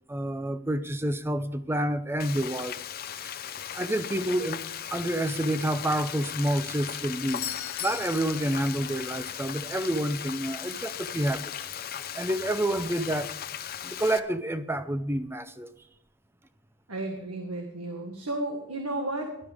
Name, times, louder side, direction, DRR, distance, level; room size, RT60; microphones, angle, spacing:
voice 1, 0.1-2.8 3.2-3.3 3.7-4.6 4.9-7.5 7.8-11.5 12.1-13.3 13.8-15.7, right 1 dB, 10° right, 11 dB, 0.6 m, -28 dB
Frying (food), 2.2-14.2, left 9 dB, 45° left, 0.7 m, -37 dB
Doorbell, 7.3-9.1 13.2-13.3, left 11 dB, 75° left, 1.3 m, -39 dB
voice 2, 16.9-19.5, right 1 dB, 80° right, 3 dB, 1.7 m, -33 dB
17.5 x 12.0 x 3.6 m, 0.72 s
head